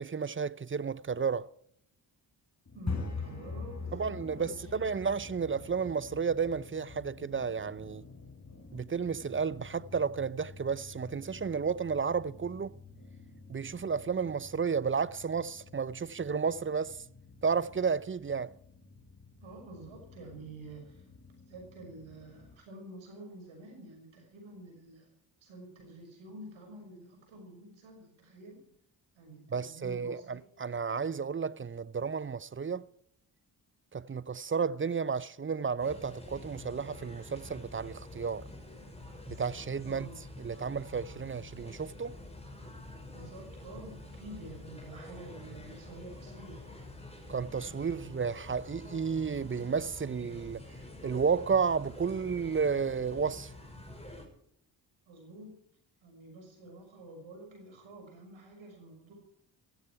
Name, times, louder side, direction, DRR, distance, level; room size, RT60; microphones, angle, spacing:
voice 1, 0.0-1.5 3.9-8.0 8.7-12.7 13.5-17.0 17.4-18.5 29.5-32.9 33.9-38.4 39.3-40.1 40.4-42.1 47.3-50.6 51.0-53.5, right 6 dB, 25° right, 0.7 m, -32 dB
sound 1, 2.7-22.6, left 4 dB, 35° left, 4.7 m, -46 dB
voice 2, 2.7-5.0 19.4-21.1 21.5-25.1 25.4-28.7 29.1-30.4 39.8-40.3 43.1-46.7 47.9-48.3 55.1-55.6 56.0-59.1, right 2 dB, 80° right, 6.0 m, -49 dB
sound 2, 35.8-54.2, left 2 dB, 15° left, 6.0 m, -47 dB
15.5 x 15.5 x 4.7 m
supercardioid pair, 45°, 46 cm